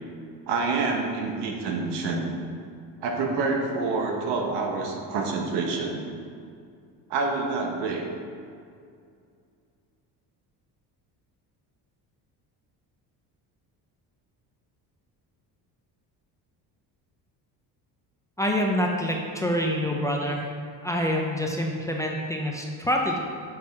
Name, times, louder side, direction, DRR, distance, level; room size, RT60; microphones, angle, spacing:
voice 1, 0.5-2.3 3.0-6.0 7.1-8.1, right 3 dB, 85° right, 1 dB, 1.2 m, -27 dB
voice 2, 18.4-23.2, equal, 10° left, 0 dB, 0.4 m, -26 dB
6.4 x 4.4 x 4.6 m, 2.3 s
cardioid pair, 145°, 40 cm